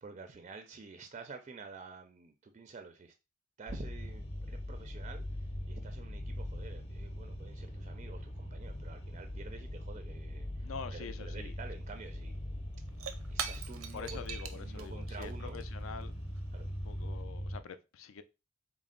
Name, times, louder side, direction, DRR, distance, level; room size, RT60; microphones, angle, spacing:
voice 1, 0.0-3.1 3.6-12.4 13.3-14.2 14.5-15.6 16.5-16.7, right 4 dB, 35° right, 0.4 m, -49 dB
sound 1, 3.7-17.6, equal, 30° left, 0.6 m, -41 dB
voice 2, 10.6-11.5 13.9-16.2 16.8-18.2, left 6 dB, 70° left, 0.4 m, -45 dB
Shatter / Crushing, 12.0-12.1 12.3-17.2, right 7 dB, 85° right, 0.5 m, -45 dB
4.1 x 2.0 x 3.7 m
head